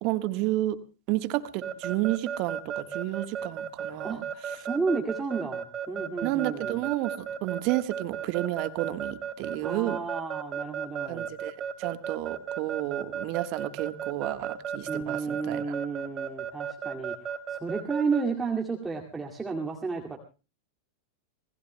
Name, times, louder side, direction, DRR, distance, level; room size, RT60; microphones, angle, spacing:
voice 1, 0.0-0.8 1.1-4.7 6.2-10.0 11.1-15.7, right 17 dB, 45° right, 11 dB, 1.4 m, -31 dB
Keyboard (musical) / Alarm, 1.6-18.2, right 8 dB, 25° right, 2.6 m, -34 dB
voice 2, 4.6-6.8 9.6-11.3 14.9-20.2, right 4 dB, 10° right, -1 dB, 2.2 m, -32 dB
27.5 x 20.0 x 2.2 m, 0.34 s
figure-of-eight pair, 90°, 0 cm